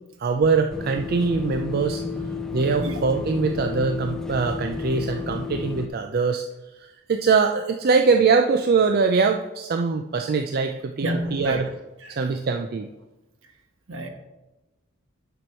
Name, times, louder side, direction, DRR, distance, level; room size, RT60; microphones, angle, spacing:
voice 1, 0.2-2.0 2.5-6.4 6.8-11.7 12.1-12.9, right 4 dB, 45° right, 5 dB, 0.4 m, -22 dB
sound 1, 0.7-5.9, left 4 dB, ahead, 0.6 m, -31 dB
voice 2, 11.0-11.6 13.9-14.1, right 1 dB, 70° right, 5 dB, 1.2 m, -28 dB
9.2 x 6.1 x 4.4 m, 1.0 s
head